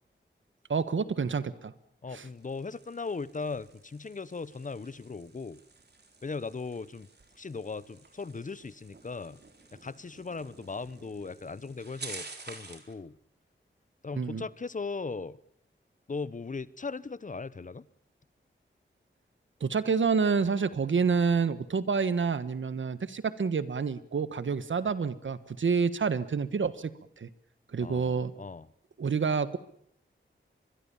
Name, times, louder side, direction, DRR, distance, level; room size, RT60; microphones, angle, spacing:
voice 1, 0.7-1.7 2.1-2.2 14.1-14.4 19.6-26.9 27.2-27.3 27.7-28.3 29.0-29.6, right 5 dB, 75° right, 14 dB, 1.5 m, -28 dB
voice 2, 2.0-5.6 6.2-7.1 7.4-9.4 9.8-13.1 14.0-15.4 16.1-17.8 27.8-28.7, left 4 dB, 40° left, 19 dB, 0.9 m, -38 dB
sound 1, 2.3-12.9, right 3 dB, 55° right, 3.8 m, -50 dB
24.5 x 22.0 x 7.2 m, 0.69 s
wide cardioid pair, 120°, 20 cm